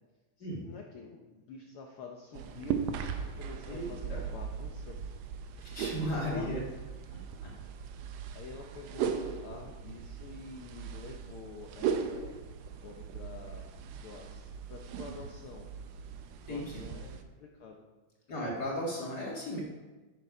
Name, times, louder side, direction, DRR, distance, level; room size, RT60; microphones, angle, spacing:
voice 1, 0.4-2.9 3.2-5.0 5.7-6.5 8.3-12.4 12.8-13.7 14.0-15.8 16.5-17.9, left 4 dB, 80° left, 1 dB, 1.2 m, -48 dB
sound 1, 2.3-17.2, right 7 dB, 70° right, 1.7 m, -38 dB
voice 2, 3.6-4.2 5.7-6.6 7.4-7.5 16.5-16.9 18.3-19.6, equal, 40° left, -3 dB, 2.0 m, -35 dB
9.9 x 9.6 x 4.8 m, 1.2 s
omnidirectional pair, 3.5 m